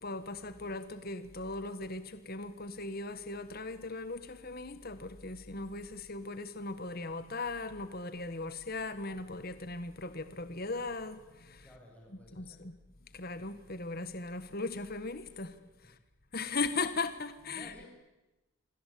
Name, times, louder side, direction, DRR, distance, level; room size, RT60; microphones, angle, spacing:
voice 1, 0.0-11.7 12.3-12.7 13.1-15.5 15.8-15.9 16.3-17.7, left 3 dB, 45° left, 1.6 m, -38 dB
voice 2, 11.6-12.6 17.4-17.9, left 1 dB, 5° left, 6.8 m, -54 dB
27.5 x 24.5 x 8.6 m
head